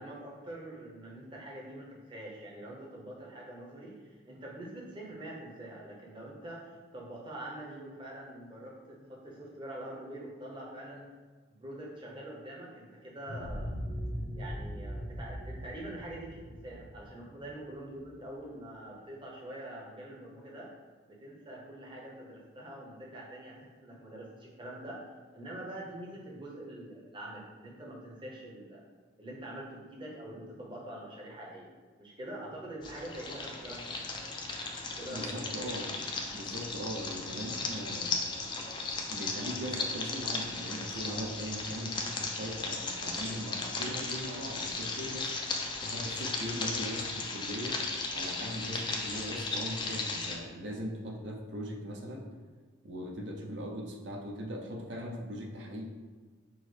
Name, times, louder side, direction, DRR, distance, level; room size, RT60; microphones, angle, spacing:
voice 1, 0.0-11.1 11.6-13.7 14.4-20.7 21.0-25.0 25.3-28.8 29.2-31.7 32.0-34.1 34.8-35.4, right 1 dB, 25° right, -4 dB, 0.7 m, -45 dB
sound 1, 13.3-18.0, equal, 65° left, 0.8 m, -39 dB
sound 2, 32.8-50.4, left 3 dB, 25° left, 0.3 m, -36 dB
voice 2, 35.1-36.1 36.3-38.2 39.1-45.4 45.8-47.8 48.1-52.3 52.8-55.8, equal, 65° right, 0 dB, 0.6 m, -40 dB
6.1 x 2.0 x 3.2 m, 1.4 s
head